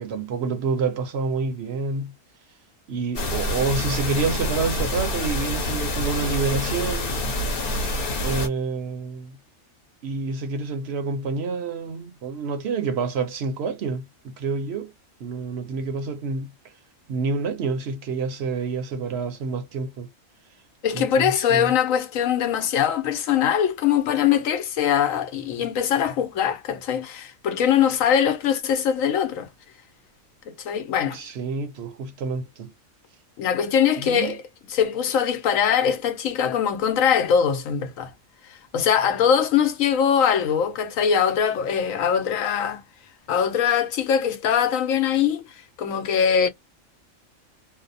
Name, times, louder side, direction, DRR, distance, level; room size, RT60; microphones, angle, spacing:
voice 1, 0.0-2.1 2.9-7.2 8.2-9.4 10.0-14.9 15.2-16.5 17.1-20.1 20.9-21.7 31.1-32.7 34.0-34.4, right 4 dB, 65° right, 0.8 m, -28 dB
sound 1, 3.1-8.5, left 1 dB, 50° left, 1.0 m, -27 dB
voice 2, 20.8-29.5 30.5-31.2 33.4-34.4 34.7-38.1 38.5-42.8 43.3-46.5, left 8 dB, 90° left, 1.1 m, -22 dB
2.7 x 2.0 x 2.5 m
omnidirectional pair, 1.4 m